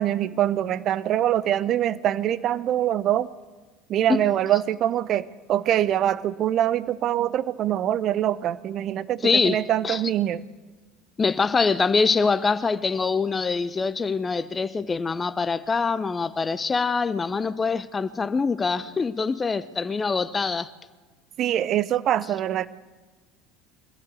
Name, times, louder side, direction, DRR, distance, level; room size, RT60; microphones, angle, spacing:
voice 1, 0.0-3.3 3.9-10.4 21.4-22.7, right 11 dB, 45° right, 0.8 m, -24 dB
voice 2, 9.2-10.0 11.2-20.7, left 4 dB, 25° left, 0.9 m, -24 dB
24.0 x 17.0 x 8.3 m
figure-of-eight pair, 65°, 0 cm